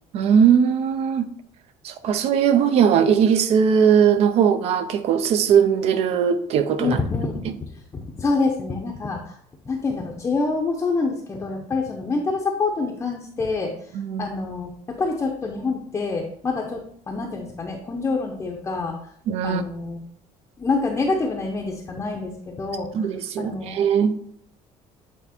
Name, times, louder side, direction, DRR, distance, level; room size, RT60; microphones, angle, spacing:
voice 1, 0.1-1.3 1.8-7.0 7.4-7.6 13.9-14.3 19.3-19.6 22.9-24.2, right 7 dB, 55° right, 12 dB, 0.6 m, -19 dB
voice 2, 6.8-7.4 8.2-9.4 9.7-13.7 14.2-18.9 19.4-20.0 20.6-22.9 23.4-23.8, left 3 dB, 20° left, -1 dB, 0.7 m, -26 dB
8.4 x 3.4 x 4.2 m, 0.65 s
cardioid pair, 160°, 13 cm